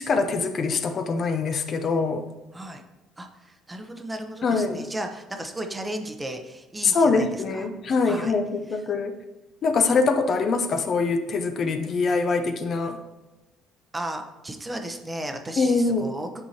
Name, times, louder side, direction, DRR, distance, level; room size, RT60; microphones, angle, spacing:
voice 1, 0.0-2.3 4.4-4.9 6.8-9.2 9.6-13.0 15.6-16.1, left 4 dB, 45° left, 7 dB, 0.5 m, -24 dB
voice 2, 3.2-7.7 8.0-8.3 13.9-16.4, right 1 dB, 15° right, 5 dB, 0.7 m, -35 dB
8.6 x 4.5 x 2.8 m, 1.0 s
cardioid pair, 110°, 0 cm